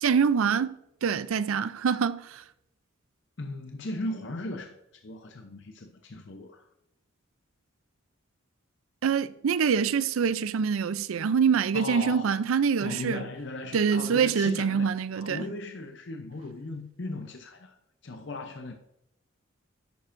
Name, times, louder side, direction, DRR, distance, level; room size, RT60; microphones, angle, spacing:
voice 1, 0.0-2.4 9.0-13.2 13.7-15.5, right 6 dB, 90° right, 0.4 m, -25 dB
voice 2, 3.4-4.8 5.0-6.7 11.7-12.4 12.8-17.7 18.0-18.8, left 2 dB, 60° left, 0.7 m, -37 dB
10.5 x 8.7 x 2.6 m
head